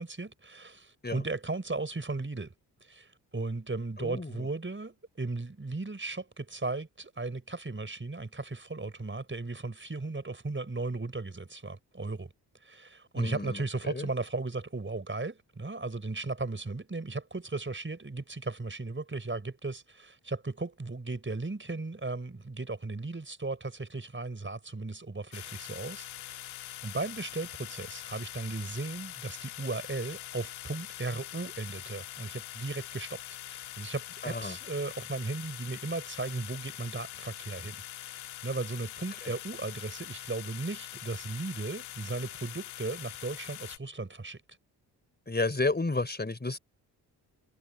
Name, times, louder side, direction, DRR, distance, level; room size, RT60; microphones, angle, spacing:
voice 1, 0.0-2.5 2.8-12.3 12.6-26.5 26.8-33.2 33.5-44.4, right 3 dB, 25° right, 5.8 m, -36 dB
voice 2, 4.0-4.5 13.1-14.1 34.2-34.6 45.3-46.6, left 3 dB, 20° left, 4.6 m, -32 dB
sound 1, 25.3-43.8, left 14 dB, 75° left, 4.7 m, -43 dB
hypercardioid pair, 40°, 48 cm